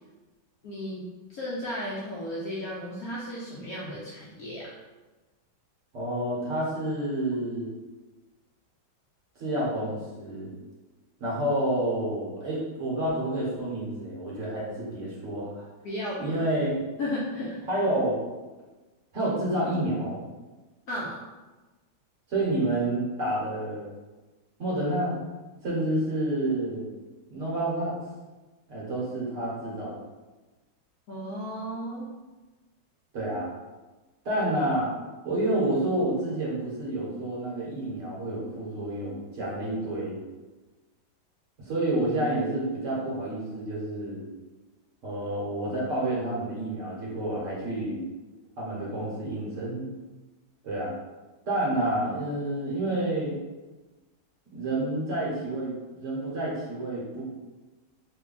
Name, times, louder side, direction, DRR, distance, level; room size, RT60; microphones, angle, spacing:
voice 1, 0.6-4.8 15.8-16.4 17.0-17.6 20.9-21.2 31.1-32.1, left 1 dB, 70° left, -6 dB, 0.8 m, -34 dB
voice 2, 5.9-7.7 9.4-10.5 11.2-15.6 16.2-16.7 17.7-18.2 19.1-20.2 22.3-23.9 24.6-25.2 25.6-26.8 27.3-27.9 28.7-30.0 33.1-33.5 34.2-34.9 35.2-40.2 41.6-44.3 45.0-48.0 48.6-49.9 50.6-50.9 51.5-53.3 54.5-55.7 56.0-57.3, right 1 dB, 45° right, -6 dB, 1.1 m, -29 dB
3.3 x 2.2 x 3.7 m, 1.2 s
omnidirectional pair, 2.2 m